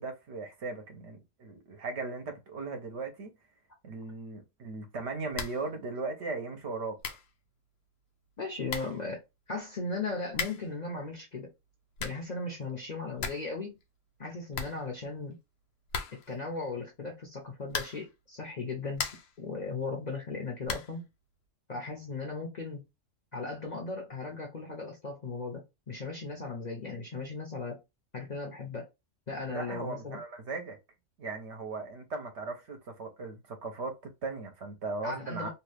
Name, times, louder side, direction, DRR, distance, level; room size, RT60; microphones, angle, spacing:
voice 1, 0.0-3.3 3.8-7.0 29.5-30.8 31.2-35.5, right 3 dB, 65° right, 1.0 m, -38 dB
sound 1, 5.3-5.7 6.0-6.1 6.7-6.8 7.0-7.3 8.3-8.4 8.7-9.0 10.3-10.8 11.7-12.3 12.7-12.8 13.0-13.5 13.8-13.9 14.2-14.3 14.5-15.3 15.9-16.4 17.7-18.2 18.6-19.4 20.6-21.0, left 6 dB, 85° left, 1.0 m, -37 dB
voice 2, 8.4-9.2 9.5-11.5 12.0-13.8 14.2-15.4 16.1-19.1 19.4-21.1 21.7-22.8 23.3-27.8 28.1-28.9 29.3-30.2 35.0-35.5, left 3 dB, 45° left, 0.6 m, -37 dB
2.8 x 2.4 x 3.3 m
omnidirectional pair, 1.3 m